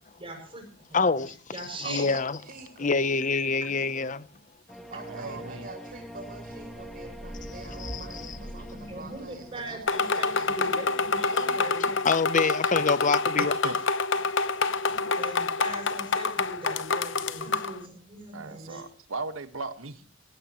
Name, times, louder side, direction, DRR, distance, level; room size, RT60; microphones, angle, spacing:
voice 1, 0.2-0.7 1.1-2.1 3.6-3.8 5.3-5.4 8.7-12.0 14.6-18.8, right 2 dB, 25° right, 7.1 m, -41 dB
voice 2, 0.9-1.4 1.9-2.3 2.8-4.3 7.8-8.0 11.8-13.5, left 4 dB, 40° left, 0.8 m, -26 dB
voice 3, 1.8-3.1 4.9-12.1, right 2 dB, 45° right, 5.9 m, -45 dB
sound 1, 4.7-9.8, equal, ahead, 1.6 m, -42 dB
voice 4, 5.1-5.7 13.4-13.8 18.3-20.0, right 3 dB, 90° right, 1.5 m, -37 dB
sound 2, 9.9-17.8, left 4 dB, 65° left, 0.9 m, -27 dB
18.0 x 16.5 x 3.1 m
head